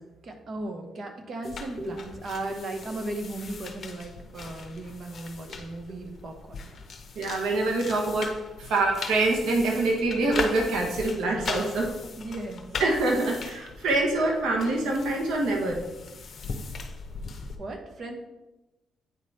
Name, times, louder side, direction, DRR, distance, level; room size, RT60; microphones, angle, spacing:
voice 1, 0.2-6.8 12.2-12.7 17.6-18.1, right 2 dB, 50° right, 4 dB, 1.1 m, -36 dB
sound 1, 1.4-17.6, left 4 dB, 50° left, 0.8 m, -39 dB
voice 2, 7.2-8.3 8.7-11.9 12.8-15.8, right 2 dB, 80° right, 0 dB, 1.1 m, -25 dB
9.1 x 3.4 x 4.2 m, 1.0 s
cardioid pair, 90°, 0 cm